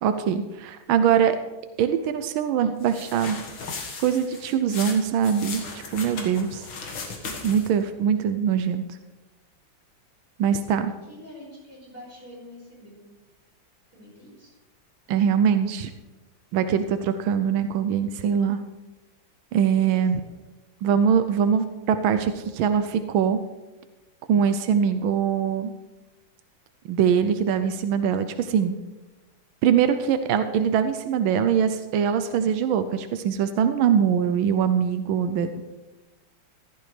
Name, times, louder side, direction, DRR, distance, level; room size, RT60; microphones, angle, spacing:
voice 1, 0.0-1.3 1.8-3.4 4.0-6.6 7.4-8.8 10.4-10.9 15.1-15.9 16.5-18.6 19.5-20.2 20.8-23.4 24.3-25.7 26.9-28.7 29.6-35.6, right 8 dB, 90° right, 9 dB, 1.5 m, -22 dB
voice 2, 0.9-1.3 10.8-13.0 13.9-14.5 19.7-20.2, equal, 25° right, -5 dB, 5.2 m, -46 dB
sound 1, 2.8-7.8, left 4 dB, 75° left, 2.3 m, -37 dB
15.0 x 12.5 x 3.3 m, 1.1 s
omnidirectional pair, 2.2 m